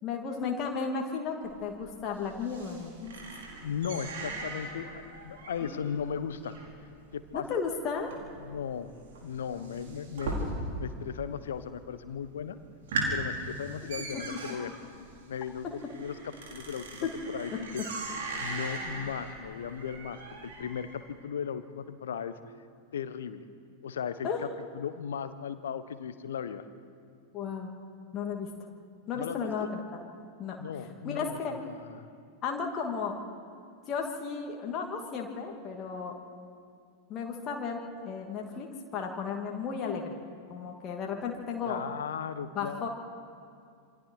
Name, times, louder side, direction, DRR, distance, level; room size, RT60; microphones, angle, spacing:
voice 1, 0.0-3.1 5.6-5.8 7.3-8.1 14.1-14.2 15.6-15.7 24.2-24.5 27.3-27.7 28.1-28.5 29.1-30.0 30.4-30.6 31.0-31.5 32.4-33.2 33.9-36.1 37.1-38.7 38.9-40.1 40.5-41.8 42.5-42.9, left 5 dB, 30° left, 0 dB, 2.7 m, -34 dB
sound 1, 1.4-11.0 11.3-11.9 12.3-12.4 12.7-21.0, right 2 dB, 60° right, 4.5 m, -39 dB
voice 2, 3.6-6.5 7.1-7.4 8.4-8.9 9.2-10.3 10.8-12.6 13.1-14.7 15.3-16.1 16.5-17.1 17.3-17.8 18.4-22.3 22.9-23.5 23.8-24.3 24.7-26.6 29.1-29.7 30.6-32.1 41.6-42.9, left 7 dB, 65° left, 12 dB, 1.2 m, -37 dB
27.5 x 24.5 x 4.8 m, 2.3 s
figure-of-eight pair, 90°, 0 cm